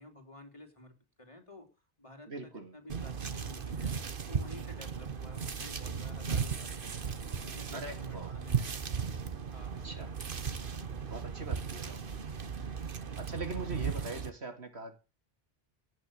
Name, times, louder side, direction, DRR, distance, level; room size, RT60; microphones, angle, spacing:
voice 1, 0.0-1.7 2.0-4.0 4.3-7.0 7.4-8.8 9.5-10.0 10.8-10.9, left 1 dB, 30° left, 3.2 m, -52 dB
voice 2, 2.3-2.8 7.7-8.4 9.8-10.1 11.1-12.0 13.2-15.0, right 3 dB, 80° right, 2.8 m, -42 dB
sound 1, 2.9-14.3, right 6 dB, 55° right, 1.3 m, -36 dB
17.5 x 6.0 x 8.7 m
omnidirectional pair, 1.1 m